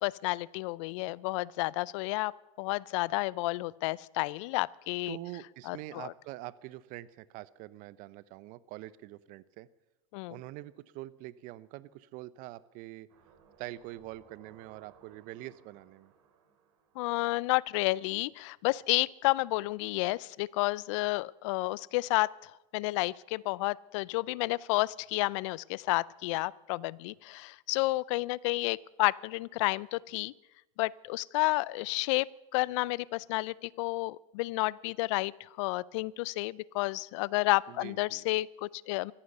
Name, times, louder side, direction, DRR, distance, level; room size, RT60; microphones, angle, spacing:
voice 1, 0.0-2.3 2.6-5.2 5.7-6.1 10.1-10.4 17.0-30.3 30.8-39.1, left 21 dB, 65° left, 23 dB, 0.5 m, -31 dB
voice 2, 5.1-9.7 10.3-13.1 13.6-16.1 37.7-38.2, right 16 dB, 55° right, 18 dB, 0.8 m, -45 dB
sound 1, 13.1-18.0 18.3-18.4, right 6 dB, 70° right, 3.5 m, -62 dB
14.5 x 14.5 x 6.7 m, 1.0 s
hypercardioid pair, 105°, 17 cm